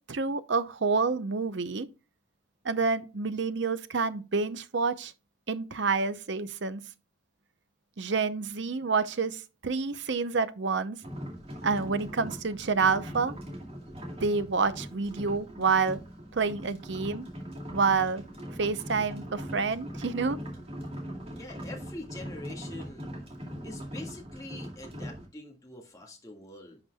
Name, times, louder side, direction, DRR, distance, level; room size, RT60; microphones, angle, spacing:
voice 1, 0.1-1.9 2.6-5.1 5.5-6.9 8.0-11.0 11.6-13.4 14.2-16.0 16.3-17.2 17.7-18.3 18.6-20.4, right 4 dB, 60° right, 0.7 m, -28 dB
sound 1, 11.0-25.3, equal, 30° right, 2.2 m, -41 dB
voice 2, 21.3-23.1 23.6-26.8, left 2 dB, 15° left, 1.8 m, -44 dB
10.5 x 5.9 x 2.3 m
head